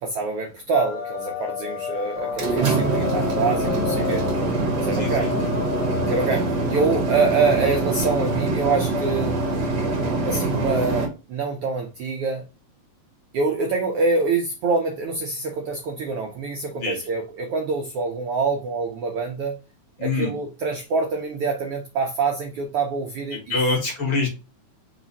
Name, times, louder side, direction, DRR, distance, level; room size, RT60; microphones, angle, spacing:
voice 1, 0.0-4.3 4.8-5.3 6.1-9.4 10.3-12.4 13.3-19.6 20.0-23.6, right 4 dB, 85° right, 1.3 m, -25 dB
sound 1, 0.7-6.3, left 6 dB, 70° left, 2.1 m, -31 dB
sound 2, 2.2-11.1, right 2 dB, 65° right, 1.0 m, -24 dB
voice 2, 20.0-20.3 23.3-24.3, left 3 dB, 55° left, 1.9 m, -24 dB
4.8 x 2.4 x 3.9 m
omnidirectional pair, 3.3 m